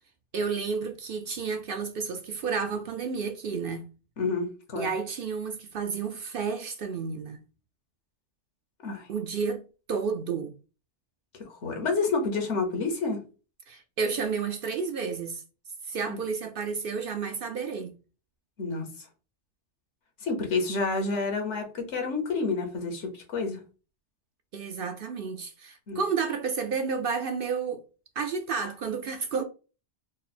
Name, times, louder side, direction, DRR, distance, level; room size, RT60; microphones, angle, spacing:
voice 1, 0.3-3.9 4.8-7.4 9.1-10.5 13.7-15.4 15.8-17.9 24.5-27.8 28.2-29.4, right 5 dB, 60° right, 0.7 m, -31 dB
voice 2, 4.2-4.9 8.8-9.1 11.4-13.2 16.1-16.2 18.6-19.0 20.2-23.6 25.9-26.0, left 4 dB, 75° left, 1.3 m, -29 dB
3.8 x 2.1 x 4.1 m
omnidirectional pair, 1.2 m